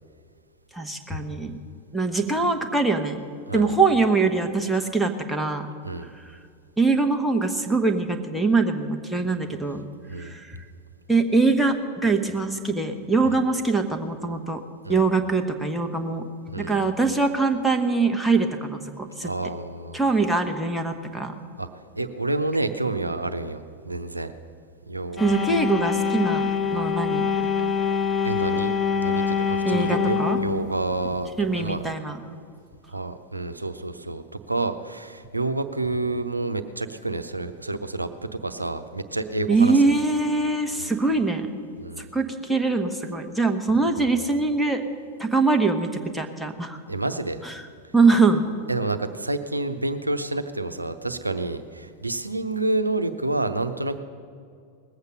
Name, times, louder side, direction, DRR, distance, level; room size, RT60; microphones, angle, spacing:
voice 1, 0.7-1.6 1.9-3.2 3.5-5.7 6.8-9.9 10.2-10.6 11.1-11.8 12.0-14.6 14.9-16.2 16.6-19.3 19.9-21.3 25.2-26.5 26.7-27.3 29.6-30.4 31.4-32.2 39.5-41.5 42.0-44.8 45.2-46.8 47.4-47.5 47.9-48.5, right 3 dB, ahead, 2 dB, 1.2 m, -23 dB
voice 2, 3.5-3.8 5.8-6.1 10.1-10.3 13.2-13.4 14.8-15.1 16.5-17.0 19.2-20.0 21.6-21.7 21.9-24.3 24.9-25.6 26.7-26.9 28.2-31.3 31.6-31.8 32.9-40.0 40.7-40.9 41.8-42.1 46.9-47.4 48.7-54.0, right 2 dB, 85° right, 9 dB, 0.7 m, -29 dB
sound 1, 25.2-31.9, left 6 dB, 20° left, 0.9 m, -25 dB
19.5 x 8.1 x 6.7 m, 2.3 s
figure-of-eight pair, 90°, 0 cm